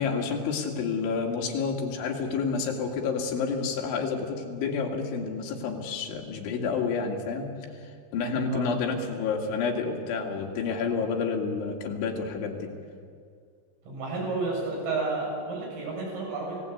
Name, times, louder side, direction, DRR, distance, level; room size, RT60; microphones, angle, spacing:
voice 1, 0.0-7.5 8.1-12.7, left 5 dB, 70° left, 2 dB, 4.5 m, -29 dB
voice 2, 13.8-16.6, right 3 dB, 90° right, -2 dB, 10.0 m, -31 dB
29.0 x 18.0 x 8.5 m, 2.2 s
omnidirectional pair, 5.7 m